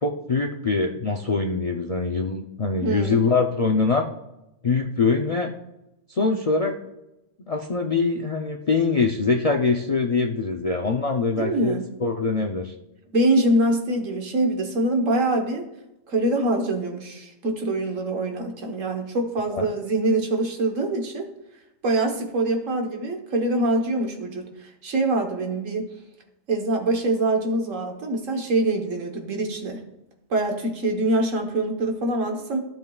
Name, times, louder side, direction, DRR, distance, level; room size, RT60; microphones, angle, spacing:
voice 1, 0.0-4.0 4.6-5.5 6.1-6.8 7.5-12.7 19.5-19.7, left 4 dB, 45° left, 3 dB, 0.5 m, -23 dB
voice 2, 2.8-3.1 11.4-11.9 13.1-15.7 16.1-21.3 21.8-25.9 26.5-29.8 30.3-32.6, right 2 dB, 70° right, 3 dB, 1.6 m, -24 dB
15.5 x 7.4 x 2.4 m, 0.92 s
omnidirectional pair, 1.4 m